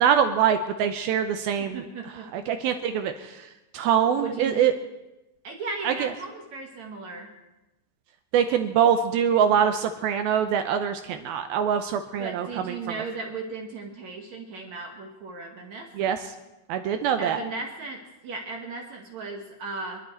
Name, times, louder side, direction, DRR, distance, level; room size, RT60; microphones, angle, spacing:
voice 1, 0.0-1.8 2.3-4.7 5.8-6.1 8.3-12.8 15.9-16.3 16.7-17.4, right 8 dB, 80° right, 7 dB, 2.2 m, -24 dB
voice 2, 1.6-2.5 4.1-4.6 5.4-7.3 12.2-16.1 17.2-20.0, right 3 dB, 60° right, 1 dB, 2.0 m, -36 dB
27.0 x 11.5 x 4.5 m, 1.0 s
omnidirectional pair, 5.0 m